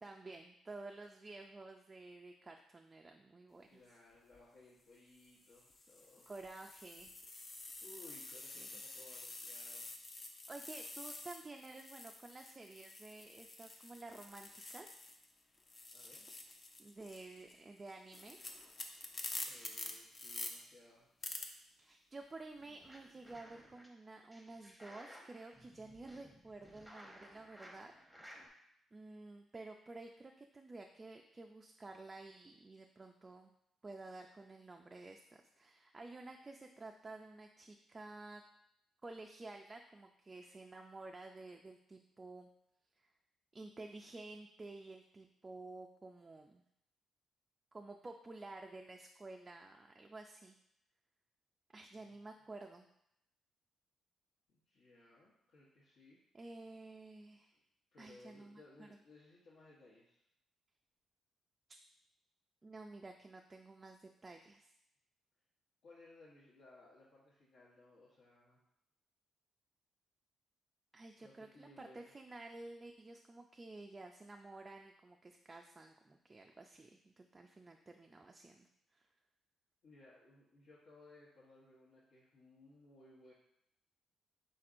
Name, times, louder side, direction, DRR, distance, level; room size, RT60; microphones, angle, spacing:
voice 1, 0.0-3.8 6.3-7.1 8.6-8.7 10.5-15.0 16.8-18.4 21.8-27.9 28.9-33.5 33.8-38.4 39.0-42.5 43.0-43.1 43.5-46.6 47.7-50.6 51.7-52.9 56.3-57.5 58.0-58.9 62.6-64.7 70.9-78.7 78.9-79.1, right 2 dB, 25° right, 3 dB, 0.3 m, -52 dB
voice 2, 3.7-6.3 7.8-9.9 15.9-16.3 19.4-21.1 51.9-52.1 54.5-56.2 57.9-60.2 65.8-68.6 71.2-72.1 79.8-83.3, left 2 dB, 70° left, -8 dB, 1.0 m, -61 dB
sound 1, 4.1-4.4 5.1-15.3 15.6-20.5 21.2-21.5, left 2 dB, 35° left, 0.6 m, -48 dB
sound 2, 22.6-23.9 24.3-28.5, equal, ahead, 0.8 m, -58 dB
4.3 x 4.0 x 2.5 m, 0.77 s
cardioid pair, 90°, 0 cm